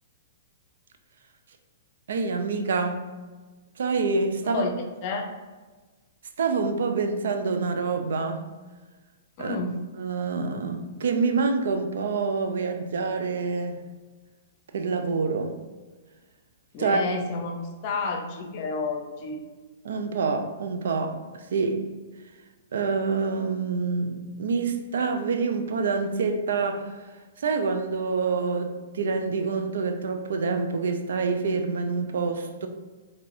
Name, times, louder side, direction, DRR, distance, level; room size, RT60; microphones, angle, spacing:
voice 1, 2.1-3.1 3.8-4.6 6.4-8.5 9.4-9.6 10.0-13.8 14.7-15.5 16.8-17.0 19.8-21.8 22.7-32.7, right 4 dB, 70° right, 0.4 m, -27 dB
voice 2, 4.4-4.8 5.0-5.3 9.4-9.8 16.7-19.4, left 3 dB, 45° left, 0.6 m, -30 dB
4.6 x 2.7 x 2.6 m
hypercardioid pair, 115°, 0 cm